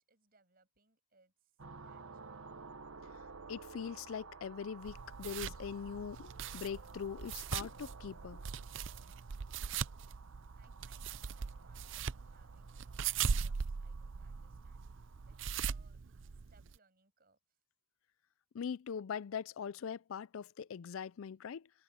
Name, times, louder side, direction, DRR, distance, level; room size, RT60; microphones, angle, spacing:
voice 1, 0.0-2.7 10.1-16.0 16.3-17.6, right 3 dB, 45° right, 6.5 m, -72 dB
sound 1, 1.6-15.5, right 4 dB, 75° right, 1.1 m, -54 dB
voice 2, 3.5-8.4 18.5-21.7, left 7 dB, 75° left, 0.4 m, -42 dB
sound 2, 4.8-16.8, right 6 dB, 60° right, 0.5 m, -40 dB
head